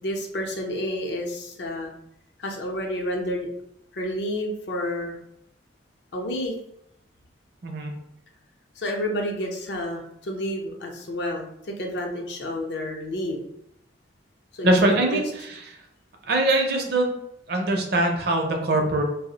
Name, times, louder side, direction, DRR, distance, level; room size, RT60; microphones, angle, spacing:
voice 1, 0.0-1.9 2.4-3.5 3.9-5.2 6.1-6.5 8.8-13.4 14.6-15.2, equal, 60° left, 1 dB, 0.6 m, -30 dB
voice 2, 7.6-8.0 14.6-15.6 16.2-17.1 17.5-19.0, right 2 dB, 55° right, 3 dB, 0.5 m, -22 dB
2.4 x 2.0 x 3.8 m, 0.78 s
head